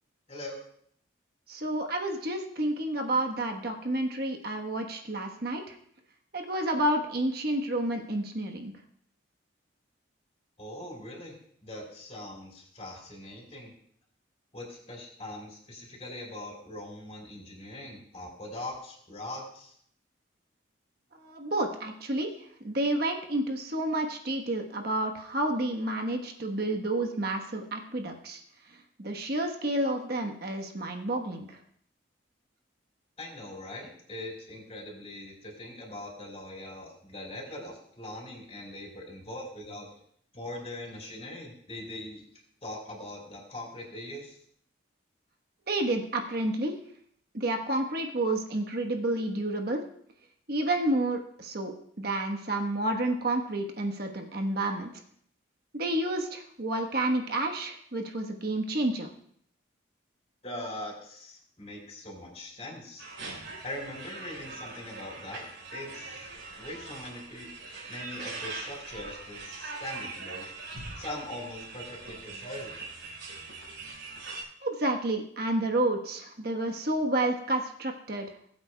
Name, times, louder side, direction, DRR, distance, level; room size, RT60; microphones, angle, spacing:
voice 1, 0.3-0.6 10.6-11.4 11.6-13.7 14.5-19.7 33.2-39.9 40.3-42.2 42.6-44.4 60.4-63.0 63.6-65.5 65.7-66.3 66.6-67.5 67.9-70.5 71.0-72.7, left 1 dB, 30° left, -2 dB, 3.8 m, -41 dB
voice 2, 1.5-5.7 6.3-8.7 21.2-22.3 22.6-28.4 29.0-31.4 45.7-46.8 47.3-49.8 50.5-54.9 55.7-59.1 74.6-78.3, right 1 dB, 50° right, 3 dB, 1.2 m, -30 dB
sound 1, 63.0-74.4, right 3 dB, 70° right, 4.7 m, -42 dB
20.5 x 8.3 x 2.3 m, 0.65 s
head